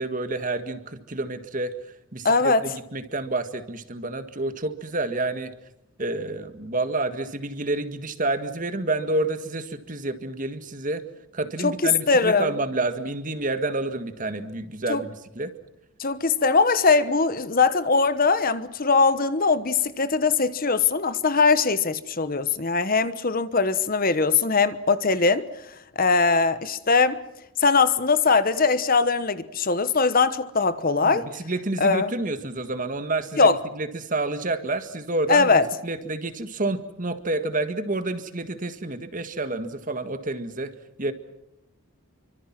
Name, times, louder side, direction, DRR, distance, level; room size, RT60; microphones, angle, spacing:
voice 1, 0.0-1.8 2.1-5.5 6.0-11.0 11.3-15.5 31.0-40.7 41.0-41.1, right 2 dB, 35° right, 1.8 m, -29 dB
voice 2, 2.2-2.7 11.6-12.5 14.9-15.0 16.0-25.5 26.0-27.2 27.6-31.3 31.8-32.1 33.4-33.6 35.3-35.7, left 4 dB, 40° left, 1.1 m, -21 dB
28.0 x 24.5 x 6.0 m
head